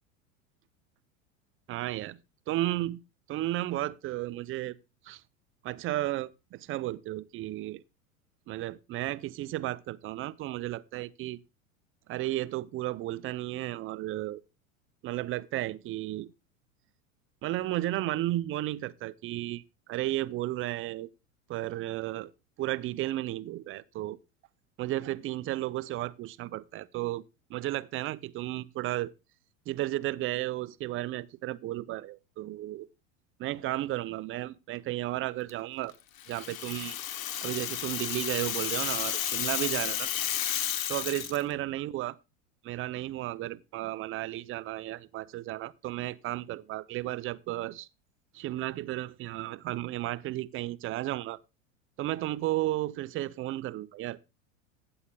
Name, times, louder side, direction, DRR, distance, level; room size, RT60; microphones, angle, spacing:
voice 1, 1.7-2.2 2.5-3.0 3.3-4.8 5.0-5.2 5.6-7.8 8.5-11.4 12.1-14.4 15.0-16.3 17.4-19.6 19.9-21.1 21.5-22.3 22.6-24.2 24.8-27.2 27.5-29.1 29.7-32.9 33.4-35.9 36.3-37.0 37.4-40.1 40.9-42.2 42.6-47.9 48.3-51.4 52.0-54.2, right 15 dB, 30° right, 0.5 m, -33 dB
Rattle (instrument), 36.2-41.4, left 10 dB, 75° left, 1.3 m, -32 dB
15.5 x 8.7 x 2.2 m
hypercardioid pair, 95°, 41 cm